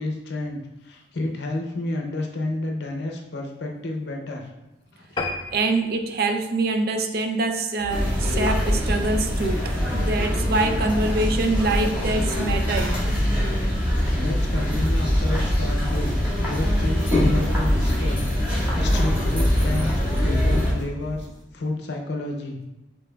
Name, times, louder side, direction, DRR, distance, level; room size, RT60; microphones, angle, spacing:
voice 1, 0.0-4.5 4.9-5.2 14.1-16.1 16.4-21.3 21.5-22.6, left 2 dB, 60° left, 1 dB, 0.6 m, -30 dB
sound 1, 5.2-7.9 8.4-8.6 9.0-9.1 9.4-9.5 9.8-9.9, left 2 dB, 25° left, 0.3 m, -34 dB
voice 2, 5.5-13.0 18.6-19.0, right 2 dB, 50° right, 6 dB, 0.4 m, -25 dB
sound 2, 7.8-21.4, equal, 90° right, 1.1 m, -40 dB
sound 3, 7.9-20.7, equal, 10° right, 1.4 m, -23 dB
5.8 x 3.5 x 2.3 m, 0.95 s
head